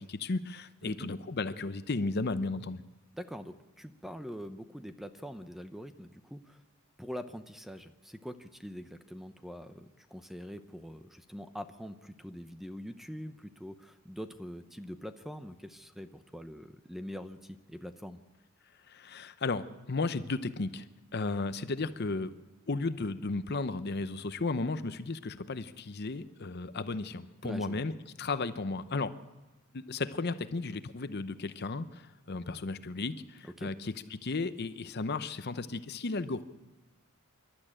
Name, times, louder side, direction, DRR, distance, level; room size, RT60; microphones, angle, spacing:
voice 1, 0.0-2.8 18.9-20.9 21.1-22.3 22.7-27.9 28.2-29.1 29.7-36.4, left 3 dB, 45° left, 12 dB, 0.7 m, -34 dB
voice 2, 3.1-6.6 7.0-18.2 27.4-27.8 33.4-33.7, equal, ahead, 9 dB, 0.7 m, -44 dB
26.0 x 12.5 x 8.8 m, 1.2 s
head